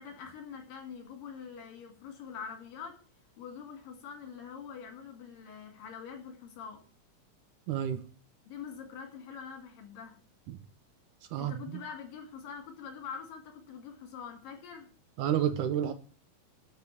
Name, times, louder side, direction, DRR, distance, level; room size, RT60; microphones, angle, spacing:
voice 1, 0.0-3.0 3.4-6.8 8.5-10.2 11.4-14.9, left 6 dB, 75° left, 4 dB, 4.1 m, -44 dB
voice 2, 7.7-8.0 10.5-10.6 11.3-11.6 15.2-15.9, right 10 dB, 70° right, 10 dB, 2.1 m, -29 dB
12.0 x 5.1 x 8.3 m, 0.40 s
omnidirectional pair, 4.0 m